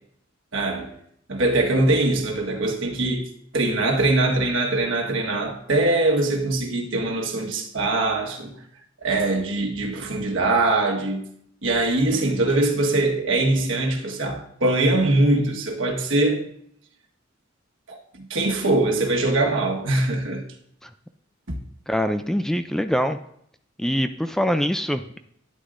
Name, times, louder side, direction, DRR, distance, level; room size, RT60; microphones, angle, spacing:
voice 1, 0.5-0.9 1.3-3.3 3.5-8.6 9.0-11.3 11.6-16.5 17.9-20.4 21.5-21.6, right 2 dB, 80° right, 1.3 m, -22 dB
voice 2, 21.9-23.2 23.8-25.2, equal, 5° left, 0.3 m, -24 dB
11.5 x 9.7 x 2.5 m
head